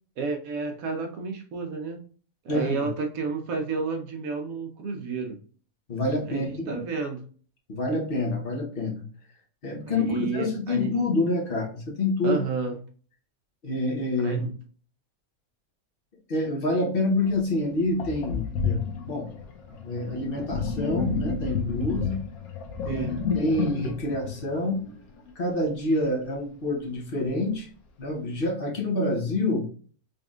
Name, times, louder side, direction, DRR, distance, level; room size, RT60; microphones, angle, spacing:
voice 1, 0.2-2.0 2.4-5.4 6.2-7.2 9.9-10.9 12.2-12.8 14.2-14.5 22.9-23.2, right 4 dB, 75° right, 5 dB, 1.1 m, -31 dB
voice 2, 2.5-2.9 5.9-6.8 7.7-9.1 9.6-12.4 13.6-14.4 16.3-19.3 19.8-22.2 22.8-23.1 23.3-24.9 25.4-27.7 28.0-29.6, left 2 dB, 45° left, 0 dB, 1.1 m, -27 dB
Sink (filling or washing), 17.3-17.4 18.0-25.3, left 5 dB, 90° left, 1.3 m, -31 dB
4.0 x 3.4 x 2.4 m, 0.42 s
omnidirectional pair, 1.5 m